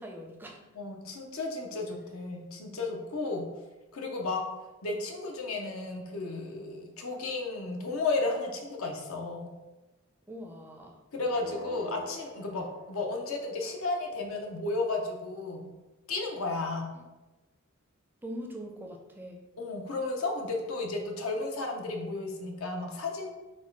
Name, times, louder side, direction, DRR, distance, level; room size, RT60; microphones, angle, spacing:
voice 1, 0.0-0.6 10.3-11.0 16.9-17.0 18.2-19.4, equal, 10° right, 1 dB, 0.4 m, -42 dB
voice 2, 0.7-3.5 3.9-4.4 4.8-9.5 11.1-15.7 16.1-16.9 19.6-23.3, left 3 dB, 85° left, 2 dB, 0.7 m, -33 dB
sound 1, 11.2-13.3, right 2 dB, 65° right, 0.6 m, -47 dB
4.2 x 2.2 x 4.6 m, 1.1 s
head